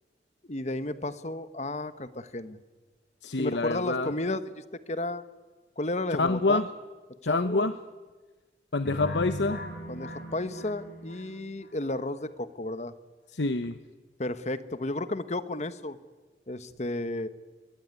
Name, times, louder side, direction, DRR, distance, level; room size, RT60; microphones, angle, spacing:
voice 1, 0.5-2.6 3.4-5.2 5.8-6.6 7.2-7.8 9.9-12.9 14.2-16.0 16.5-17.3, left 2 dB, 40° left, 13 dB, 1.1 m, -33 dB
voice 2, 3.2-4.1 6.2-6.6 7.2-7.7 8.7-9.6 13.3-13.7, left 3 dB, 85° left, 10 dB, 1.0 m, -26 dB
sound 1, 8.9-11.7, equal, 55° left, 5.1 m, -38 dB
22.5 x 21.0 x 9.6 m, 1.3 s
head